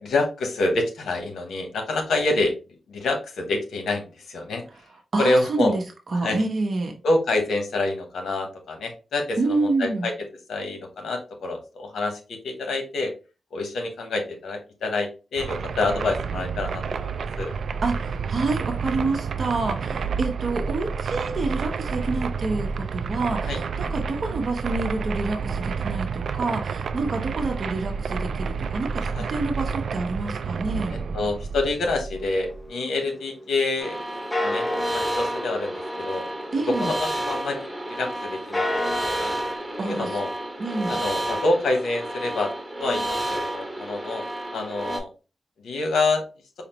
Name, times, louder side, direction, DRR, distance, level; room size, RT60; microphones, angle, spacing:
voice 1, 0.0-2.5 2.9-4.6 5.2-5.8 6.2-6.4 7.0-13.1 13.5-17.5 23.5-23.6 24.0-24.1 29.0-29.3 31.1-34.0 34.4-34.7 34.9-36.3 36.7-38.7 39.0-39.3 39.8-40.3 40.9-42.5 42.8-44.3 44.5-45.1 45.6-46.2, left 2 dB, 85° left, 3 dB, 1.0 m, -27 dB
voice 2, 5.1-5.8 6.1-6.9 9.4-10.1 17.8-30.9 36.5-36.9 39.8-40.2 40.6-41.0, right 3 dB, 55° right, 3 dB, 0.9 m, -28 dB
sound 1, 15.4-32.7, right 5 dB, 70° right, 0.3 m, -30 dB
sound 2, 32.2-33.9 34.3-37.8 38.3-39.6, left 1 dB, 20° left, 0.8 m, -32 dB
sound 3, 33.8-45.0, right 1 dB, 15° right, 1.3 m, -31 dB
5.0 x 2.4 x 3.0 m, 0.33 s
cardioid pair, 65°, 0 cm